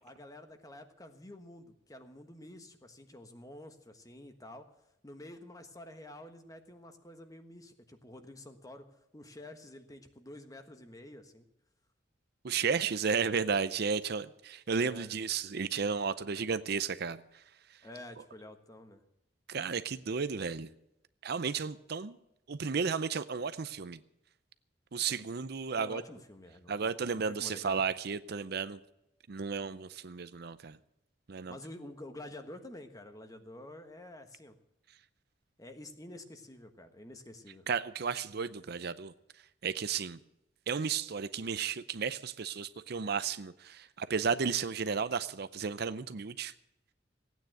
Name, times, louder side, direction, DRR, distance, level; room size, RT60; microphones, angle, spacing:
voice 1, 0.0-4.7 5.0-8.8 9.1-11.5 14.8-15.1 17.8-19.0 25.8-27.8 31.5-34.6 35.6-37.6, left 1 dB, 20° left, 7 dB, 1.3 m, -49 dB
voice 2, 12.4-17.2 19.5-20.7 21.2-22.2 22.5-24.0 24.9-26.0 26.7-28.8 29.3-30.8 31.3-31.6 37.7-39.1 39.6-40.2 40.7-46.5, right 5 dB, 60° right, 13 dB, 0.6 m, -33 dB
16.0 x 9.3 x 7.7 m, 0.85 s
head